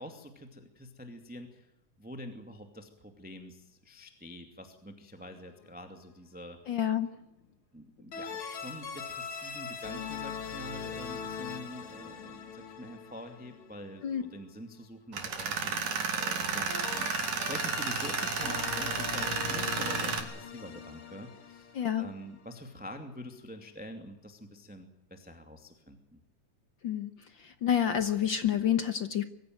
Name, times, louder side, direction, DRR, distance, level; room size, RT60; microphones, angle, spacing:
voice 1, 0.0-1.7 2.0-6.6 7.7-15.8 16.2-26.2, equal, 5° right, 5 dB, 1.9 m, -46 dB
sound 1, 5.2-5.7 8.1-14.0 16.7-22.6, left 6 dB, 45° left, 2.7 m, -41 dB
voice 2, 6.7-7.1 14.0-14.2 21.7-22.1 26.8-27.1 27.4-29.2, left 9 dB, 65° left, 10 dB, 1.2 m, -28 dB
Tools, 15.1-20.2, right 5 dB, 80° right, 4.2 m, -32 dB
24.0 x 16.0 x 9.2 m, 0.87 s
omnidirectional pair, 3.5 m